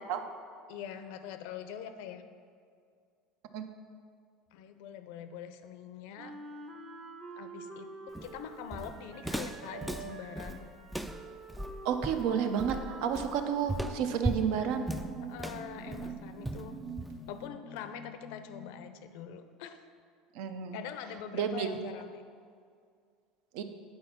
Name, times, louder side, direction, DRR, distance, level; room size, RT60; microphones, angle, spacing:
voice 1, 0.7-2.2 4.5-6.4 7.4-7.9 8.2-10.7 14.1-14.2 15.2-16.7 17.3-19.8 20.7-22.2, left 8 dB, 70° left, 10 dB, 0.5 m, -44 dB
Wind instrument woodwind instrument, 6.2-14.3, right 3 dB, 30° right, 0.8 m, -47 dB
Walk footsteps, 8.1-17.4, right 1 dB, 5° right, 0.3 m, -38 dB
voice 2, 11.8-14.9 20.3-20.8 21.3-21.7 23.5-23.6, right 7 dB, 65° right, 7 dB, 0.6 m, -31 dB
sound 1, 13.7-18.9, right 4 dB, 80° right, 2.1 m, -45 dB
8.8 x 4.3 x 5.7 m, 2.2 s
cardioid pair, 150°, 0 cm